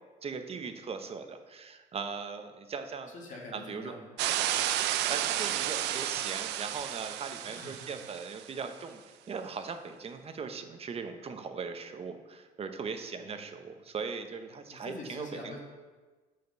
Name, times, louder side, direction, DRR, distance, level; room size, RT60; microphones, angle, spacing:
voice 1, 0.2-3.1 3.5-3.9 5.1-15.5, right 5 dB, 35° right, 7 dB, 0.8 m, -39 dB
voice 2, 3.1-4.1 7.4-7.9 13.1-13.5 14.7-15.6, left 2 dB, 45° left, -2 dB, 1.7 m, -45 dB
sound 1, 4.2-8.4, right 12 dB, 90° right, 0.5 m, -32 dB
6.6 x 5.1 x 6.9 m, 1.3 s
cardioid pair, 110°, 17 cm